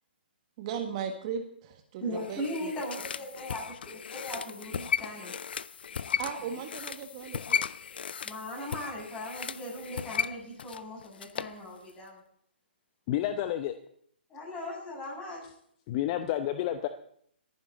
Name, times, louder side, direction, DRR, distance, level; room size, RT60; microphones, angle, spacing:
voice 1, 0.6-2.7 6.2-7.6, right 7 dB, 35° right, 5 dB, 1.5 m, -37 dB
voice 2, 2.0-5.3 8.2-12.2 14.3-15.4, equal, 15° left, -3 dB, 7.7 m, -38 dB
sound 1, 2.2-11.6 11.9-12.0, left 7 dB, 65° left, 0.5 m, -36 dB
voice 3, 13.1-13.8 15.9-16.9, left 12 dB, 35° left, 10 dB, 0.8 m, -30 dB
26.0 x 9.8 x 4.1 m, 0.66 s
figure-of-eight pair, 135°, 6 cm